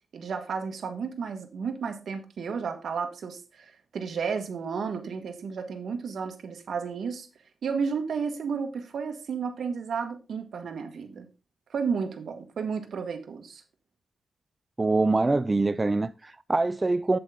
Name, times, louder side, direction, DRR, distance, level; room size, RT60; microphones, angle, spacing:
voice 1, 0.1-7.3 7.6-11.3 11.7-13.6, right 5 dB, 70° right, 1.5 m, -32 dB
voice 2, 14.8-17.2, right 3 dB, 20° right, 0.3 m, -24 dB
8.2 x 7.7 x 3.7 m
wide cardioid pair, 130°, 0 cm